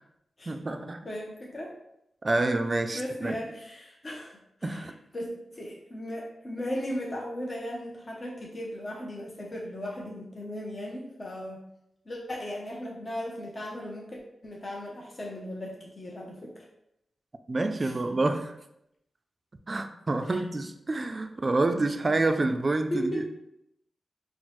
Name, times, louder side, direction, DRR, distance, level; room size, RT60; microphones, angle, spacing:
voice 1, 0.5-1.0 2.2-3.4 4.6-4.9 17.5-18.6 19.7-23.3, right 2 dB, 40° right, 7 dB, 0.3 m, -28 dB
voice 2, 1.0-1.8 2.9-11.6 12.1-16.7 17.8-17.9 20.3-20.4 22.9-23.3, left 1 dB, 40° left, -2 dB, 0.6 m, -37 dB
4.2 x 2.0 x 3.0 m, 0.81 s
cardioid pair, 55°, 0 cm